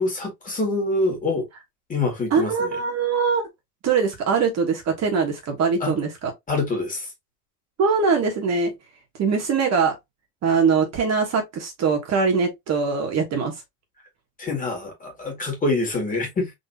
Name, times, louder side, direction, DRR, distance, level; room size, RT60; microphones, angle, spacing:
voice 1, 0.0-1.5 1.9-2.8 5.8-5.9 6.5-7.1 14.4-16.5, left 2 dB, 20° left, 1.9 m, -25 dB
voice 2, 2.3-3.4 3.8-6.1 7.8-8.7 9.2-10.0 10.4-13.5, right 5 dB, 40° right, 1.3 m, -22 dB
4.0 x 3.0 x 2.7 m
cardioid pair, 130°, 41 cm